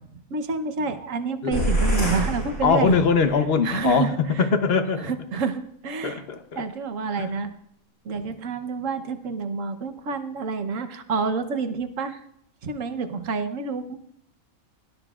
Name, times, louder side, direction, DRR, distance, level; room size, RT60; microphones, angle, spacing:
voice 1, 0.3-3.0 3.6-4.5 5.0-6.2 6.6-7.5 8.0-12.2 12.6-14.0, right 4 dB, 70° right, 1.3 m, -28 dB
sound 1, 1.5-3.4, right 1 dB, 75° left, 6.6 m, -25 dB
voice 2, 2.6-5.1 6.0-6.6 7.2-7.3, left 5 dB, 50° left, 1.1 m, -22 dB
23.0 x 12.5 x 2.4 m
omnidirectional pair, 1.4 m